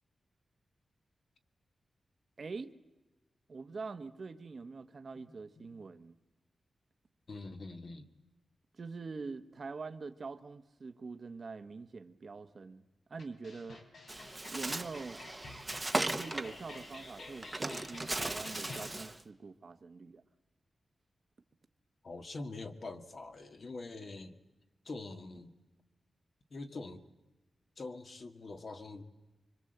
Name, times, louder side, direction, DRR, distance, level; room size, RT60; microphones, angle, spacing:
voice 1, 2.4-2.8 3.5-6.1 8.8-12.8 13.1-13.8 14.4-15.2 16.0-20.2, right 4 dB, 45° right, 9 dB, 1.1 m, -44 dB
voice 2, 7.3-8.1 22.0-24.4 24.9-25.5 26.5-27.0 27.8-29.0, left 3 dB, 50° left, 7 dB, 1.8 m, -44 dB
sound 1, 13.2-18.9, left 2 dB, 70° left, 4.0 m, -50 dB
Bird, 14.1-19.2, right 2 dB, 15° right, 1.0 m, -38 dB
25.5 x 24.5 x 7.9 m, 1.1 s
wide cardioid pair, 135°, 0 cm